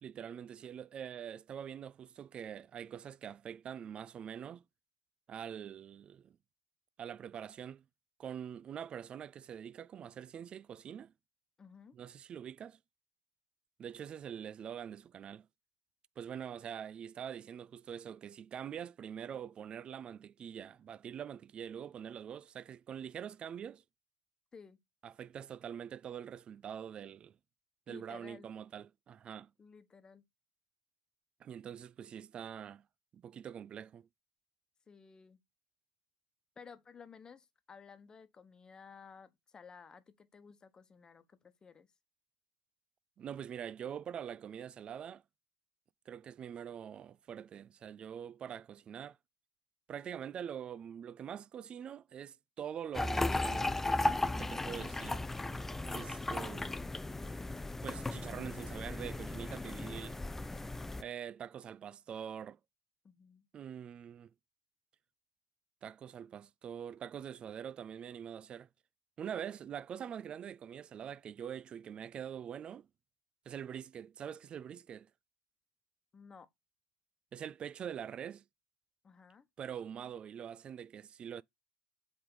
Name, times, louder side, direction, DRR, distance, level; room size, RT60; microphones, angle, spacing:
voice 1, 0.0-4.6 5.3-6.4 7.0-7.8 8.2-11.1 11.9-12.8 13.8-15.5 16.2-23.8 25.0-27.4 27.9-29.5 31.4-32.8 33.1-34.1 43.2-45.2 46.1-49.2 49.9-53.8 54.4-55.2 55.9-56.8 57.8-60.2 61.0-62.6 63.5-64.3 65.8-68.7 69.2-72.9 73.5-75.1 77.3-78.4 79.6-81.4, right 8 dB, 40° right, 0.4 m, -44 dB
voice 2, 11.6-12.0 24.5-24.8 27.9-28.5 29.6-30.2 34.9-35.4 36.6-41.9 54.4-54.9 63.0-63.5 76.1-76.5 79.0-79.5, left 5 dB, 30° left, 1.2 m, -55 dB
sound 1, 52.9-61.0, left 2 dB, 10° left, 0.5 m, -36 dB
7.6 x 3.6 x 3.9 m
hypercardioid pair, 80°, 3 cm